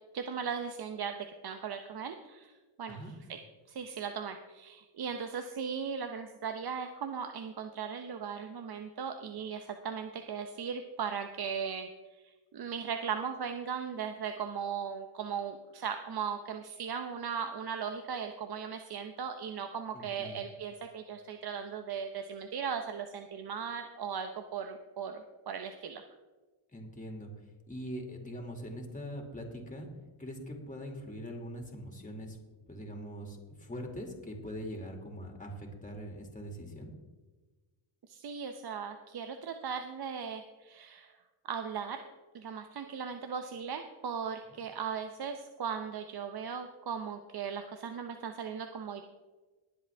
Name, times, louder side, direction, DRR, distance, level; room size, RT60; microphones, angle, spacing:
voice 1, 0.1-1.2 1.4-2.5 2.8-3.0 3.3-3.4 3.7-11.9 12.2-26.0 38.1-41.1 41.5-42.0 42.3-49.0, right 7 dB, 50° right, 7 dB, 0.9 m, -38 dB
voice 2, 19.9-20.4 26.7-27.3 27.7-29.9 30.2-32.4 32.7-36.9 44.5-44.6, equal, 15° left, 2 dB, 2.4 m, -42 dB
20.5 x 7.5 x 3.5 m, 1.3 s
cardioid pair, 95°, 48 cm